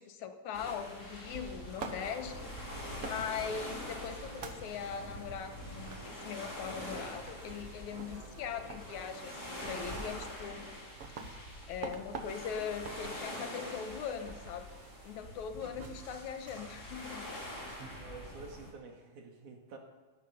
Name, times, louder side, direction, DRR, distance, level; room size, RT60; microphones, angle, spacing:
voice 1, 0.0-10.8 11.7-14.7 15.0-17.3 17.6-17.8, left 7 dB, 75° left, 8 dB, 2.5 m, -41 dB
sound 1, 0.5-18.7, left 1 dB, 30° left, 4.1 m, -45 dB
sound 2, 0.6-18.4, right 5 dB, 55° right, 2.2 m, -50 dB
sound 3, 2.0-9.9, right 2 dB, 35° right, 1.9 m, -55 dB
voice 2, 18.0-19.8, right 4 dB, 80° right, 2 dB, 3.7 m, -50 dB
17.0 x 12.5 x 6.7 m, 1.2 s
omnidirectional pair, 3.4 m